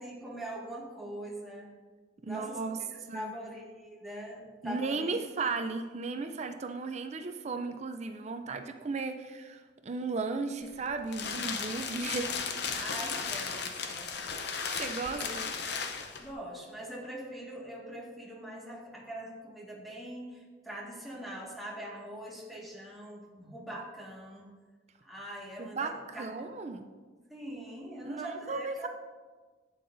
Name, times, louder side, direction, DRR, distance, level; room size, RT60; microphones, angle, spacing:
voice 1, 0.0-1.7 2.2-2.8 3.1-5.2 12.8-14.1 14.4-14.5 15.1-15.3 16.2-24.5 25.0-26.5 27.3-28.9, right 1 dB, ahead, -4 dB, 1.7 m, -42 dB
voice 2, 2.2-2.8 3.1-3.3 4.6-12.3 14.4-15.5 25.6-26.9 28.1-28.9, right 4 dB, 40° right, 7 dB, 0.4 m, -35 dB
sound 1, 10.6-16.3, left 5 dB, 60° left, 0.7 m, -35 dB
11.5 x 8.4 x 2.6 m, 1.4 s
head